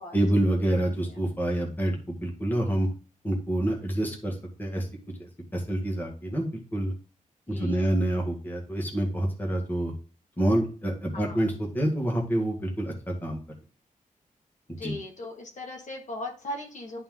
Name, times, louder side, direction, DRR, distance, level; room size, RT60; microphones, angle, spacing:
voice 1, 0.1-2.9 3.2-4.9 5.2-6.9 7.5-9.9 10.4-13.4 14.7-15.0, right 1 dB, 15° left, -1 dB, 2.0 m, -27 dB
voice 2, 7.5-7.9 11.1-11.4 14.7-17.0, left 1 dB, 60° left, 1 dB, 2.1 m, -38 dB
11.0 x 4.3 x 3.8 m, 0.37 s
wide cardioid pair, 155°, 14 cm